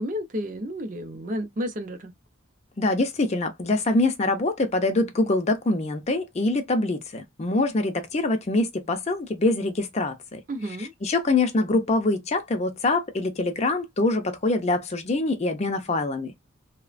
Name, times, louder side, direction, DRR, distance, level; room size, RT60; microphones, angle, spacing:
voice 1, 0.0-2.1 10.5-10.9, equal, 40° right, 0.5 m, -31 dB
voice 2, 2.8-10.4 10.8-16.3, left 2 dB, 30° left, 0.4 m, -24 dB
3.1 x 2.1 x 2.4 m
head